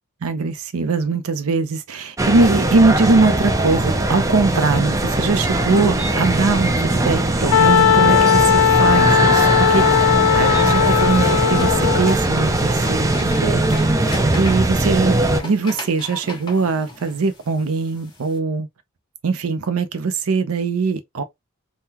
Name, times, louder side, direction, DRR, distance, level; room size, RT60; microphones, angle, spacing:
voice 1, 0.2-13.6 14.4-18.7 19.2-21.2, right 4 dB, 75° right, 0.6 m, -21 dB
sound 1, 2.2-15.4, right 2 dB, 15° right, 0.4 m, -20 dB
sound 2, 5.9-18.4, left 1 dB, 20° left, 1.3 m, -39 dB
Wind instrument woodwind instrument, 7.5-12.2, left 9 dB, 85° left, 0.3 m, -16 dB
3.6 x 2.2 x 2.8 m
head